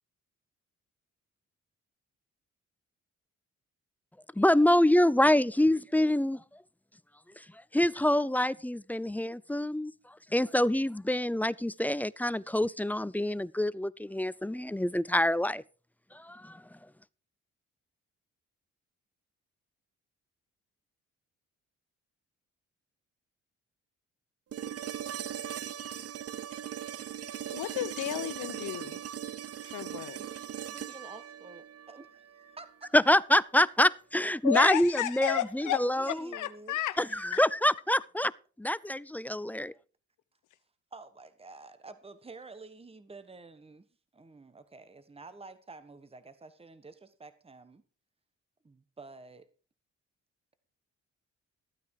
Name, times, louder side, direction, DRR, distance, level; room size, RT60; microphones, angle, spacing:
voice 1, 4.4-6.4 7.7-9.9 10.3-15.6 16.1-16.6 32.9-36.1 37.0-38.3 38.6-39.7, left 1 dB, 5° left, 0.5 m, -26 dB
sound 1, 24.5-32.6 34.7-34.8, right 10 dB, 55° right, 0.6 m, -39 dB
voice 2, 27.5-29.0 29.7-30.2 34.4-35.8 36.3-37.4, left 13 dB, 85° left, 1.0 m, -32 dB
voice 3, 30.1-32.9 35.3-36.8 40.9-43.9 44.1-47.8 48.6-49.4, right 3 dB, 20° right, 1.3 m, -49 dB
14.5 x 9.3 x 4.7 m
cardioid pair, 80°, 30 cm